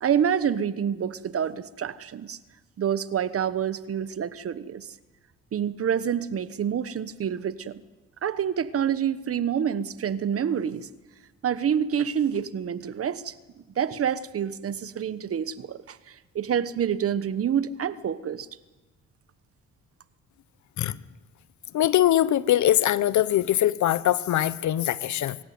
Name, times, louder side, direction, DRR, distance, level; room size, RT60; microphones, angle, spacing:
voice 1, 0.0-2.4 2.8-4.9 5.5-7.8 8.2-10.9 11.4-13.3 13.8-16.0 16.3-18.5, right 8 dB, 50° right, 15 dB, 1.1 m, -27 dB
voice 2, 21.7-25.4, left 12 dB, 70° left, 17 dB, 0.9 m, -22 dB
24.5 x 14.0 x 9.4 m, 1.2 s
cardioid pair, 90°, 30 cm